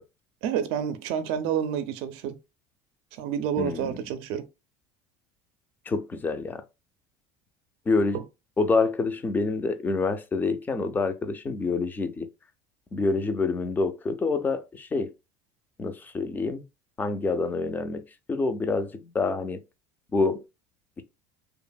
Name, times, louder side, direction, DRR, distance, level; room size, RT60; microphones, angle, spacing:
voice 1, 0.4-2.3 3.2-4.4 8.1-8.2, right 8 dB, 65° right, 0.4 m, -29 dB
voice 2, 3.6-4.0 5.9-6.6 7.9-8.2 8.6-12.3 12.9-15.1 15.8-16.6 17.0-18.0 18.3-19.6 20.1-20.4 21.0-21.1, left 3 dB, 15° left, 0.4 m, -27 dB
2.8 x 2.5 x 2.2 m
supercardioid pair, 120°, 11 cm